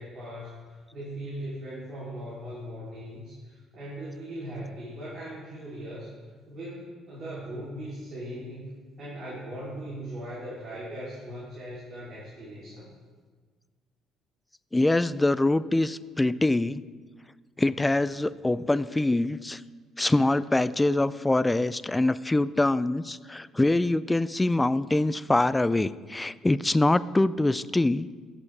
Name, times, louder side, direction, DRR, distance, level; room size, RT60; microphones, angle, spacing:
voice 1, 0.0-6.1 6.5-8.7 9.0-12.9, right 1 dB, 50° right, -8 dB, 3.0 m, -39 dB
voice 2, 14.7-16.8 17.6-19.6 20.0-28.1, left 2 dB, 15° left, 16 dB, 0.3 m, -24 dB
13.0 x 7.0 x 3.3 m, 1.5 s
hypercardioid pair, 60°, 0 cm